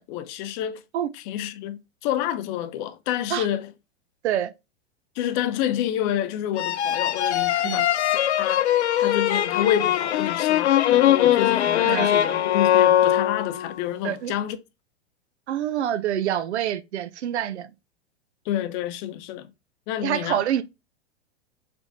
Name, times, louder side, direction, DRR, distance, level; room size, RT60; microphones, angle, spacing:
voice 1, 0.0-0.8 1.1-3.7 5.2-8.7 9.0-14.6 18.5-19.5 19.9-20.4, left 11 dB, 45° left, 0.6 m, -28 dB
sound 1, 6.6-13.7, left 11 dB, 85° left, 0.6 m, -21 dB
voice 2, 15.5-17.7 20.0-20.6, right 11 dB, 80° right, 0.6 m, -26 dB
4.6 x 3.4 x 2.6 m
hypercardioid pair, 110°, 33 cm